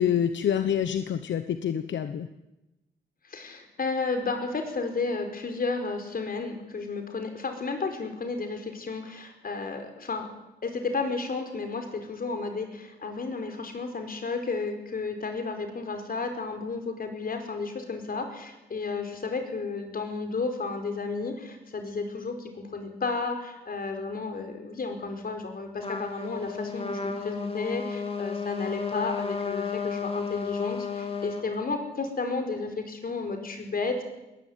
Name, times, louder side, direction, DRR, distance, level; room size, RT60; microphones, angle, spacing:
voice 1, 0.0-2.3, left 9 dB, 80° left, 10 dB, 1.1 m, -26 dB
voice 2, 3.2-10.3 10.6-34.0, left 4 dB, 50° left, 5 dB, 5.1 m, -32 dB
Trumpet, 25.8-31.4, left 5 dB, 30° left, 2.7 m, -33 dB
21.0 x 18.5 x 9.5 m, 0.98 s
cardioid pair, 105°, 19 cm